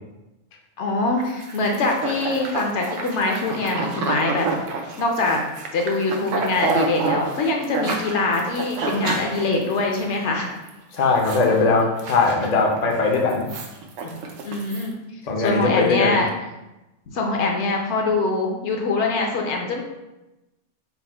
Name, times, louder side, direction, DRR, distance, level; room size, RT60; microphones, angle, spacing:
voice 1, 0.8-4.5 5.0-5.4 5.7-10.5 14.4-14.9 15.4-16.3 17.1-19.8, left 3 dB, 70° left, 2 dB, 0.9 m, -23 dB
sound 1, 1.2-10.1 10.5-10.7 10.9-11.5 11.8-12.8 13.1-14.8, right 3 dB, 80° right, 1.0 m, -28 dB
voice 2, 10.9-13.5 14.0-14.1 15.3-16.2, left 3 dB, 50° left, 1 dB, 0.5 m, -20 dB
4.0 x 2.1 x 4.3 m, 1.0 s
omnidirectional pair, 1.3 m